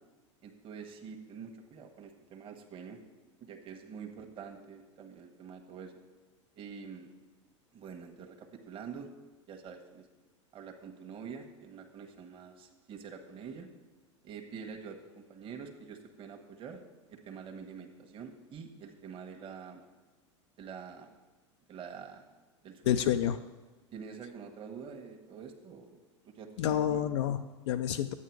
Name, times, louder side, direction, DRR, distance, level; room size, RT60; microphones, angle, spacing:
voice 1, 0.4-3.0 3.4-6.0 6.6-7.1 7.7-9.1 9.5-10.1 10.5-13.7 14.2-16.8 17.1-19.8 20.6-21.1 21.7-22.2 22.6-23.0 23.9-26.0 26.2-27.0, right 6 dB, 35° right, 3 dB, 1.4 m, -46 dB
voice 2, 22.9-23.4 26.6-28.1, left 10 dB, 65° left, 7 dB, 0.5 m, -29 dB
11.0 x 8.2 x 4.7 m, 1.2 s
hypercardioid pair, 95°, 16 cm